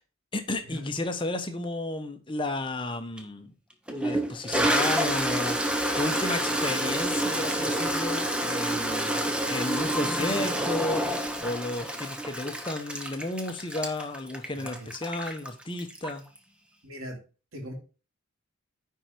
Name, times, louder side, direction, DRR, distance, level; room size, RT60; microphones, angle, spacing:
voice 1, 0.3-3.5 3.9-16.2, left 2 dB, 25° left, 0.9 m, -33 dB
Toilet flush, 3.2-3.3 3.9-16.4, right 1 dB, 5° right, 0.8 m, -28 dB
voice 2, 14.5-14.9 16.8-17.2 17.5-17.7, equal, 80° right, 2.9 m, -40 dB
9.8 x 4.6 x 4.4 m
head